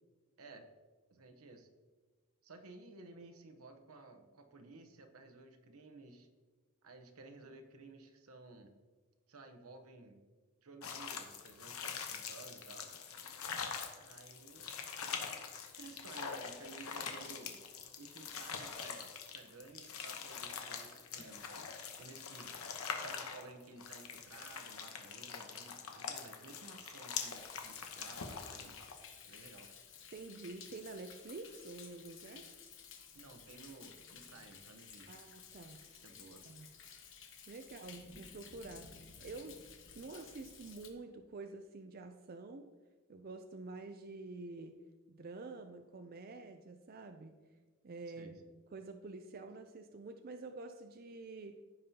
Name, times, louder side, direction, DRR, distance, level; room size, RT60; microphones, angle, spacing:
voice 1, 1.1-1.7 2.4-6.3 6.8-8.7 9.3-10.2 10.6-12.9 14.0-14.7 15.8-17.6 18.0-21.7 22.0-22.5 23.0-28.8 29.2-29.7 33.1-35.2 35.9-36.4 48.2-48.4, right 3 dB, 85° right, 6 dB, 1.0 m, -55 dB
sound 1, 10.8-28.9, left 6 dB, 80° left, 1.0 m, -44 dB
Thunder, 27.2-40.9, left 6 dB, 60° left, 1.1 m, -55 dB
voice 2, 30.1-32.4 35.1-35.8 36.5-36.7 37.5-39.6 39.9-42.7 43.1-44.8 45.1-47.4 47.8-51.6, right 3 dB, 45° right, 6 dB, 0.4 m, -48 dB
14.5 x 5.4 x 2.8 m, 1.4 s
head